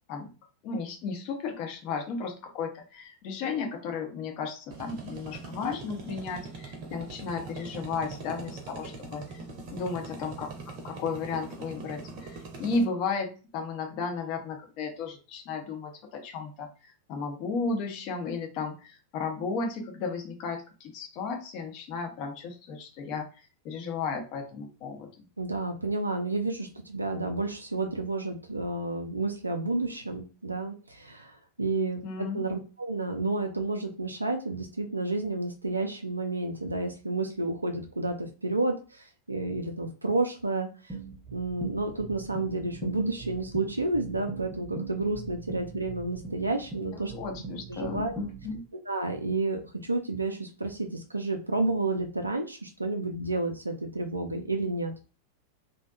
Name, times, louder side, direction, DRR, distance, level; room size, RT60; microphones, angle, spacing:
voice 1, 0.6-9.4 9.7-10.5 10.8-16.7 17.1-25.1 32.0-32.4 46.9-48.6, left 4 dB, 40° left, 4 dB, 0.7 m, -34 dB
sound 1, 4.7-12.8, right 3 dB, 45° right, 0.7 m, -42 dB
voice 2, 25.4-40.7 41.3-47.1 47.7-48.1 48.9-54.9, right 2 dB, 80° right, 4 dB, 0.3 m, -31 dB
sound 2, 40.9-48.6, right 5 dB, 10° right, 0.8 m, -40 dB
2.5 x 2.1 x 2.4 m, 0.34 s
figure-of-eight pair, 90°, 0 cm